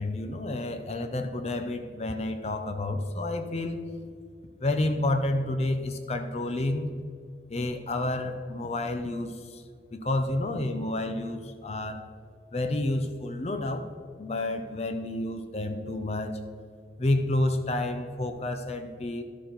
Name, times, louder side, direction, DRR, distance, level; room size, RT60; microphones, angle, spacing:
voice 1, 0.0-3.8 4.6-6.9 7.5-9.6 9.9-12.1 12.5-13.9 14.2-16.4 17.0-19.2, left 2 dB, 35° left, 7 dB, 0.6 m, -30 dB
12.5 x 6.5 x 3.9 m, 2.2 s
head